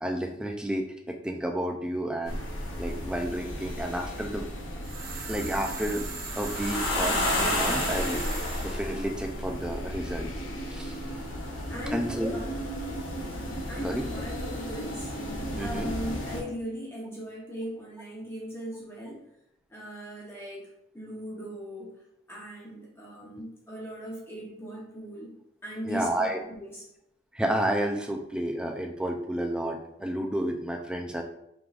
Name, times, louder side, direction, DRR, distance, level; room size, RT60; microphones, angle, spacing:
voice 1, 0.0-2.4 2.8-4.5 5.3-6.1 6.4-8.2 8.6-10.3 10.7-11.0 11.9-12.3 13.8-14.0 15.6-15.9 25.9-26.4 27.3-31.2, right 1 dB, 5° right, 3 dB, 0.4 m, -31 dB
sound 1, 2.3-16.4, left 1 dB, 85° left, 0.9 m, -33 dB
sound 2, 4.8-8.8, right 5 dB, 45° right, 0.7 m, -39 dB
voice 2, 11.7-12.5 13.7-19.2 19.7-21.9 22.3-25.3 25.6-26.8, equal, 10° left, -5 dB, 0.9 m, -39 dB
4.7 x 3.7 x 2.4 m, 0.81 s
head